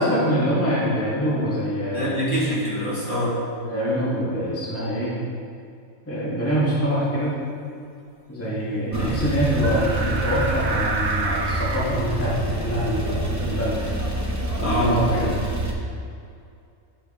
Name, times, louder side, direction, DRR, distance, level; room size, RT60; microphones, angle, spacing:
voice 1, 0.0-2.2 3.6-5.1 6.1-7.4 8.3-13.8 14.1-14.2 14.6-15.3, equal, 10° left, -8 dB, 1.6 m, -24 dB
voice 2, 1.9-3.3 8.6-9.1 14.6-15.0, equal, 60° left, -9 dB, 2.5 m, -25 dB
Male speech man speaking / Car / Idling, 8.9-15.7, right 1 dB, 20° right, 0.5 m, -27 dB
sound 1, 9.6-11.9, right 3 dB, 75° right, 1.2 m, -28 dB
9.1 x 6.1 x 3.7 m, 2.4 s
omnidirectional pair, 1.5 m